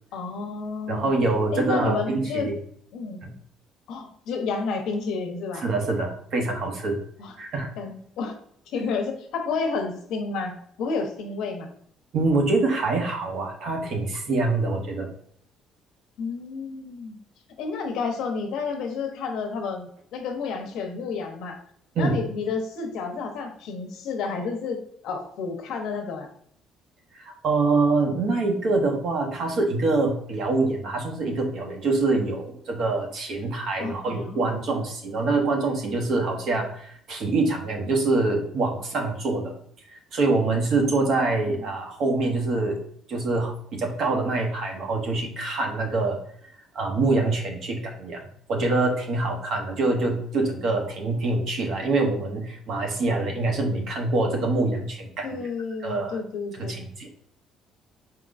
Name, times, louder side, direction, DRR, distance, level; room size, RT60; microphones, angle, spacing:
voice 1, 0.1-1.1 1.5-2.5 2.9-3.2 3.9-5.6 7.2-7.3 7.8-8.4 8.7-10.5 10.8-11.7 16.2-17.2 17.6-21.6 22.0-26.3 33.8-34.6 40.8-41.5 55.2-56.7, left 4 dB, 70° left, 3 dB, 0.8 m, -31 dB
voice 2, 0.9-2.5 3.2-3.3 5.6-7.0 7.4-7.7 12.1-15.1 21.9-22.2 27.2-39.6 39.9-42.8 43.1-46.2 46.7-55.4 55.8-56.2 56.6-57.1, right 3 dB, 45° right, 2 dB, 0.9 m, -25 dB
4.6 x 3.7 x 2.5 m, 0.64 s
cardioid pair, 175°, 0 cm